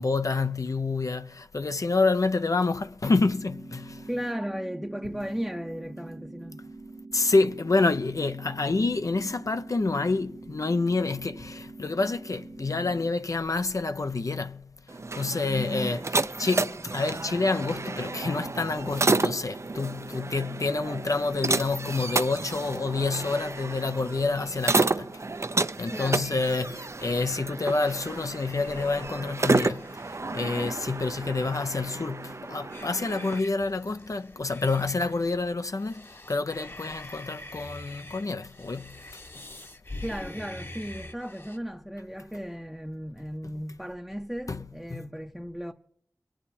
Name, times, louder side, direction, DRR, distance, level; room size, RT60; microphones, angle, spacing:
voice 1, 0.0-4.1 7.1-25.2 25.8-39.4 44.5-44.6 44.9-45.1, left 3 dB, 60° left, 0.5 m, -28 dB
sound 1, 3.1-13.1, right 3 dB, 80° right, 1.2 m, -45 dB
voice 2, 4.1-6.6 15.4-16.0 25.9-26.4 40.0-45.7, equal, 5° right, 0.6 m, -35 dB
sound 2, 14.9-33.4, right 3 dB, 45° right, 0.5 m, -31 dB
sound 3, 27.0-41.6, left 1 dB, 35° left, 1.0 m, -46 dB
22.5 x 8.9 x 4.2 m
wide cardioid pair, 55°, 7 cm